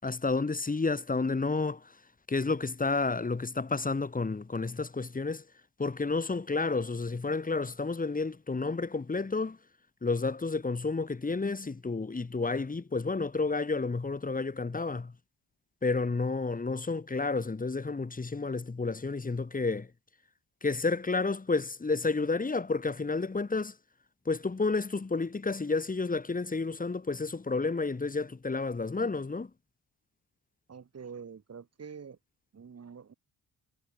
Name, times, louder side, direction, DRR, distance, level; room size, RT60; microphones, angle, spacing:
voice 1, 0.0-1.8 2.3-5.4 5.8-9.6 10.0-15.1 15.8-19.9 20.6-23.7 24.3-29.5, left 3 dB, 20° left, 3.0 m, -30 dB
voice 2, 30.7-32.2 32.5-33.1, right 6 dB, 40° right, 5.0 m, -46 dB
wide cardioid pair, 145°, 39 cm